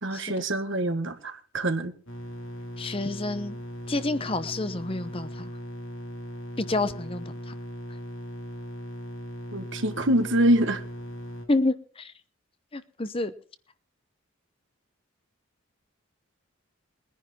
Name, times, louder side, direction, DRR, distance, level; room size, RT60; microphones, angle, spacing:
voice 1, 0.0-1.9 9.5-10.8, right 1 dB, 60° right, 9 dB, 1.6 m, -25 dB
sound 1, 2.1-11.4, equal, 60° left, 3.1 m, -38 dB
voice 2, 2.8-3.6 3.9-5.5 6.6-7.5 11.5-12.1 12.7-13.3, left 2 dB, 25° left, 12 dB, 0.8 m, -29 dB
20.5 x 10.5 x 4.3 m, 0.42 s
head